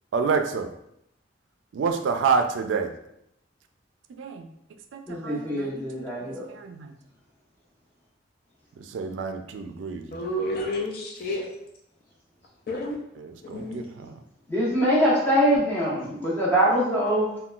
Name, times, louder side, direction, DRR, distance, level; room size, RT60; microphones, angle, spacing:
voice 1, 0.1-0.7 1.7-2.9 4.2-4.5 4.9-5.8 6.2-6.9 8.8-10.2 13.2-14.2, right 5 dB, 85° right, 6 dB, 0.3 m, -28 dB
voice 2, 5.1-6.4 14.5-17.3, equal, 10° left, -8 dB, 0.9 m, -23 dB
voice 3, 10.1-11.5 12.7-13.0 13.4-13.8, left 1 dB, 50° left, -1 dB, 0.4 m, -30 dB
3.7 x 2.2 x 2.3 m, 0.78 s
head